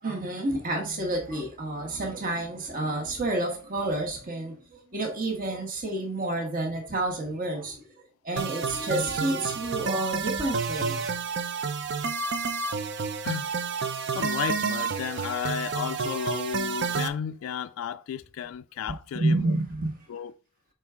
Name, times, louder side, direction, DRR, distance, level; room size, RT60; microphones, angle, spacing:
voice 1, 0.0-7.8 8.2-11.1 19.1-20.0, right 2 dB, 45° right, 1.3 m, -29 dB
sound 1, 8.4-17.1, right 5 dB, 60° right, 0.6 m, -30 dB
voice 2, 14.1-19.6 20.1-20.3, left 8 dB, 85° left, 0.3 m, -33 dB
6.1 x 4.5 x 3.6 m
head